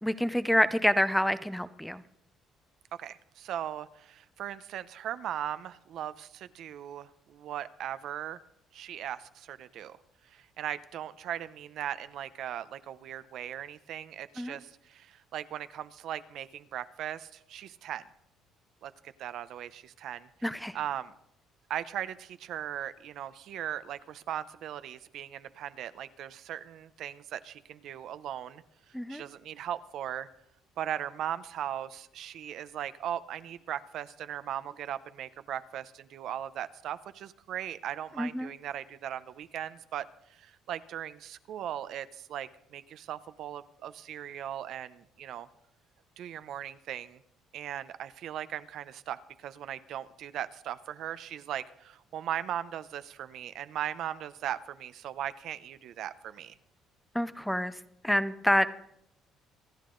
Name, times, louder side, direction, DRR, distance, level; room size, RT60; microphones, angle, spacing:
voice 1, 0.0-2.0 14.4-14.6 20.4-20.8 28.9-29.2 38.2-38.5 57.1-57.8 58.0-58.7, equal, ahead, 13 dB, 0.6 m, -27 dB
voice 2, 3.0-8.4 8.7-10.0 10.2-18.0 18.8-20.3 20.7-21.1 21.7-30.3 30.8-45.5 46.2-47.2 47.5-56.5, right 10 dB, 60° right, 13 dB, 0.7 m, -38 dB
26.0 x 10.5 x 3.8 m, 0.77 s
cardioid pair, 130°, 0 cm